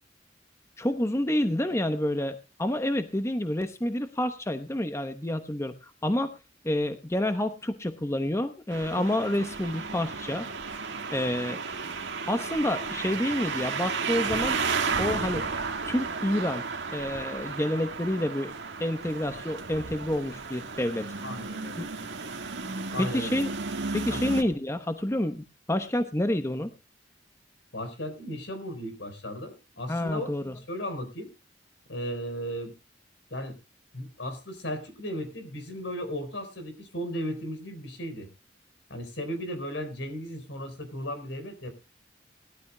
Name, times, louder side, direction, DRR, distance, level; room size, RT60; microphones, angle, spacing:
voice 1, 0.8-6.4 6.6-10.5 11.1-11.6 12.3-14.6 15.0-15.5 15.8-16.6 16.9-18.5 18.8-21.1 21.7-21.9 23.0-23.5 23.9-26.7 29.9-30.6, left 1 dB, 15° left, 8 dB, 0.9 m, -28 dB
sound 1, 8.7-24.4, right 4 dB, 80° right, 1.7 m, -33 dB
voice 2, 21.2-21.8 22.9-23.3 24.1-24.2 27.7-30.3 30.7-31.3 31.9-32.7 33.3-33.6 33.9-38.3 38.9-41.7, equal, 85° left, 8 dB, 4.3 m, -35 dB
20.5 x 13.0 x 2.2 m, 0.31 s
head